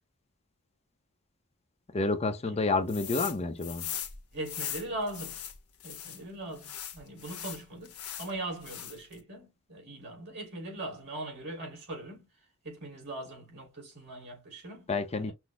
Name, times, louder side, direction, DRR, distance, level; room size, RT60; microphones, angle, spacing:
voice 1, 1.9-3.9 14.9-15.3, left 3 dB, 30° left, 0.6 m, -29 dB
sound 1, 2.9-3.4 3.6-6.2 6.6-8.3 8.6-9.1, left 10 dB, 90° left, 1.1 m, -39 dB
voice 2, 4.3-5.4 5.8-12.3 12.6-14.9 15.2-15.3, right 1 dB, 50° right, 3.2 m, -40 dB
6.0 x 2.0 x 3.5 m
head